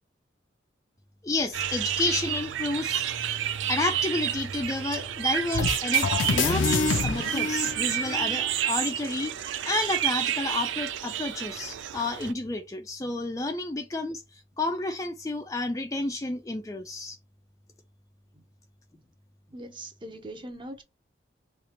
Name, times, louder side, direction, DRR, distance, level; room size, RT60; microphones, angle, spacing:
voice 1, 1.2-3.1 3.7-17.2, left 2 dB, 15° left, 0.4 m, -31 dB
sound 1, 1.5-12.3, right 11 dB, 80° right, 0.4 m, -30 dB
sound 2, 5.5-8.4, left 4 dB, 85° left, 0.6 m, -27 dB
voice 2, 19.5-20.8, right 1 dB, 25° right, 0.7 m, -41 dB
3.3 x 2.4 x 4.2 m
head